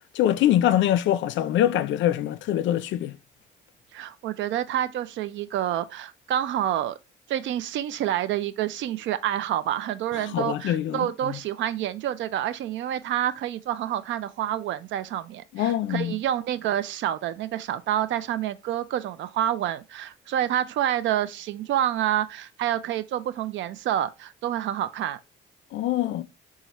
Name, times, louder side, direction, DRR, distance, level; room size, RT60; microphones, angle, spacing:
voice 1, 0.1-3.2 10.2-11.4 15.5-16.1 25.7-26.2, left 12 dB, 70° left, 0.4 m, -24 dB
voice 2, 3.9-7.0 7.3-25.2, right 11 dB, 70° right, 0.4 m, -28 dB
4.1 x 2.4 x 2.9 m
cardioid pair, 90°, 20 cm